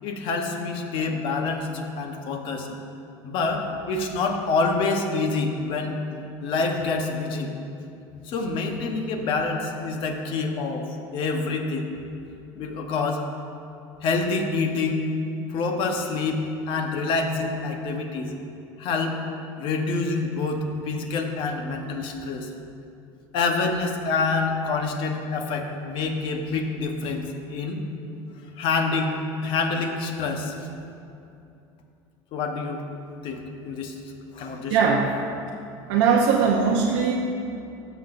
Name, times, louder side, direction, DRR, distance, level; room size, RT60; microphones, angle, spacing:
voice 1, 0.0-2.7 3.2-7.5 8.3-10.9 11.1-11.9 12.6-13.2 14.0-15.0 15.5-18.3 18.8-19.2 19.6-22.5 23.3-27.8 28.6-29.2 29.4-30.5 32.3-32.9 33.2-33.9 34.3-34.8, left 3 dB, 55° left, 4 dB, 1.0 m, -27 dB
voice 2, 34.7-35.1 35.9-37.1, right 6 dB, 80° right, -2 dB, 0.8 m, -20 dB
15.0 x 6.0 x 2.6 m, 2.7 s
supercardioid pair, 120°, 10 cm